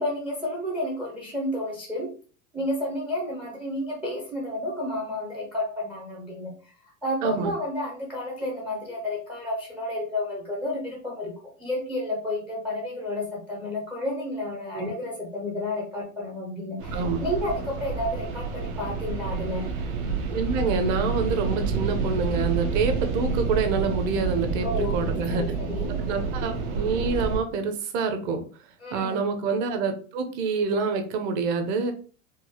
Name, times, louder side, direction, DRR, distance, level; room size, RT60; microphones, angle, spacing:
voice 1, 0.0-2.1 2.5-6.7 7.0-19.7 24.6-26.0 28.8-29.3, left 1 dB, 5° right, -1 dB, 0.4 m, -31 dB
voice 2, 7.2-7.5 14.7-14.9 16.9-17.2 20.3-25.6 25.9-28.4 28.9-31.9, right 4 dB, 45° right, 7 dB, 0.7 m, -27 dB
sound 1, 16.8-27.4, right 5 dB, 85° right, 1.1 m, -29 dB
4.5 x 2.1 x 2.9 m, 0.39 s
supercardioid pair, 150°, 41 cm